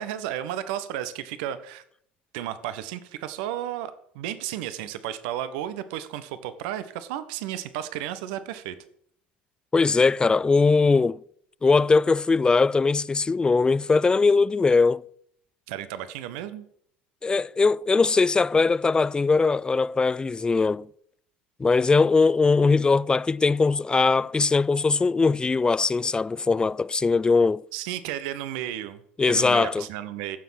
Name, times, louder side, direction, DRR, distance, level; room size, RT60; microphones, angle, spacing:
voice 1, 0.0-1.8 2.3-8.8 15.7-16.6 27.7-30.4, right 11 dB, 65° right, 1.2 m, -33 dB
voice 2, 9.7-11.2 11.6-15.0 17.2-20.9 21.6-27.6 29.2-29.8, left 4 dB, 15° left, 0.4 m, -21 dB
15.5 x 7.3 x 5.9 m
hypercardioid pair, 70°, 5 cm